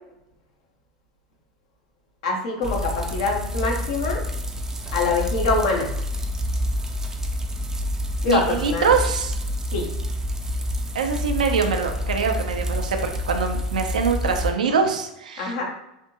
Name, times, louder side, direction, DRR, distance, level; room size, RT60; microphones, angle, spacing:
voice 1, 2.2-4.2 4.9-5.9 8.2-9.0 9.7-9.9 15.4-15.6, left 3 dB, 65° left, 0 dB, 0.9 m, -24 dB
sound 1, 2.6-14.5, equal, 10° right, 0.5 m, -28 dB
voice 2, 8.2-9.3 10.9-15.5, right 5 dB, 80° right, 5 dB, 0.5 m, -24 dB
3.4 x 2.6 x 2.8 m, 0.87 s
hypercardioid pair, 90°, 4 cm